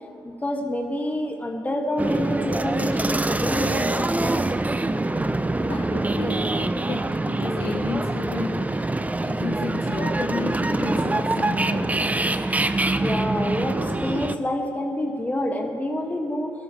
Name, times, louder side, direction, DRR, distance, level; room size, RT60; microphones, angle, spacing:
voice 1, 0.2-4.4 13.0-16.5, left 1 dB, 15° left, 1 dB, 2.1 m, -28 dB
sound 1, 2.0-14.4, right 2 dB, 15° right, 0.7 m, -24 dB
voice 2, 5.6-8.9 9.2-12.0, left 3 dB, 80° left, -1 dB, 2.0 m, -33 dB
21.5 x 13.0 x 3.4 m, 2.7 s
supercardioid pair, 50°, 9 cm